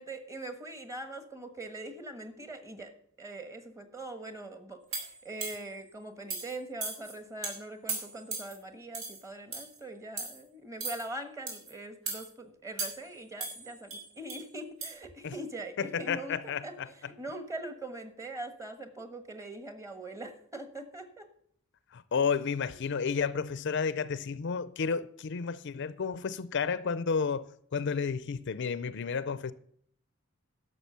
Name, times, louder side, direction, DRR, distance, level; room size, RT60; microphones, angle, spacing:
voice 1, 0.0-2.9 3.2-16.3 16.6-21.3, right 2 dB, 15° right, 1.3 m, -42 dB
sound 1, 4.9-5.8 6.3-6.5 6.8-7.1 7.4-7.5 7.9-8.5 8.9-9.2 9.5-9.8 10.2-10.4 10.8-11.0 11.5-11.7 12.1-12.3 12.8-13.1 13.4-14.4 14.8-14.9, right 3 dB, 80° right, 4.1 m, -37 dB
voice 2, 15.8-16.9 21.9-29.5, left 5 dB, 60° left, 0.5 m, -31 dB
11.5 x 6.8 x 6.8 m
head